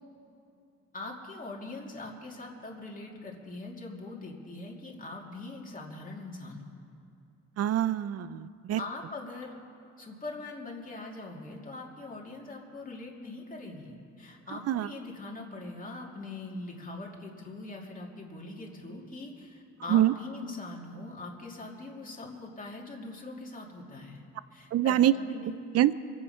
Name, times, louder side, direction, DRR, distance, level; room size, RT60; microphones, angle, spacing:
voice 1, 0.9-6.7 8.8-9.6 10.0-24.2 24.5-25.6, left 2 dB, 25° left, -2 dB, 2.8 m, -42 dB
voice 2, 7.6-8.8 14.7-14.9 19.9-20.1 24.7-25.1 25.7-25.9, right 12 dB, 55° right, 16 dB, 0.5 m, -24 dB
25.0 x 8.8 x 5.7 m, 2.6 s
cardioid pair, 90°, 30 cm